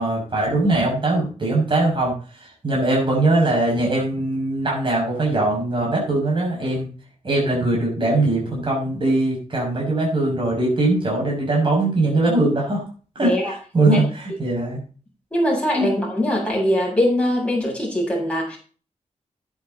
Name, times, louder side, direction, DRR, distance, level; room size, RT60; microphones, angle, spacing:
voice 1, 0.0-6.9 7.2-12.8 13.2-14.8 15.7-15.9, right 2 dB, 40° right, -3 dB, 6.7 m, -21 dB
voice 2, 13.2-13.5 13.9-14.0 15.3-18.6, equal, 10° left, -3 dB, 7.6 m, -22 dB
12.5 x 10.5 x 4.2 m, 0.39 s
wide cardioid pair, 150°, 13 cm